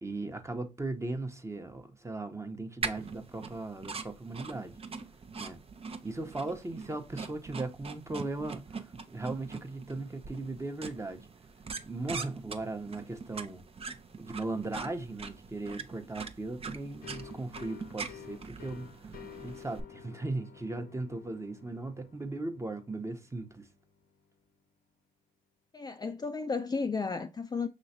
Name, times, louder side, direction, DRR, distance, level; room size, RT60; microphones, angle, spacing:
voice 1, 0.0-4.8 5.4-5.6 6.0-11.3 11.8-13.6 14.2-23.7, right 2 dB, 20° right, 1.0 m, -38 dB
sound 1, 2.8-19.8, right 5 dB, 40° right, 0.7 m, -43 dB
sound 2, 17.0-24.5, left 7 dB, 75° left, 0.9 m, -52 dB
voice 2, 25.7-27.7, left 4 dB, 25° left, 0.4 m, -33 dB
5.7 x 3.1 x 2.7 m
supercardioid pair, 60°, 16 cm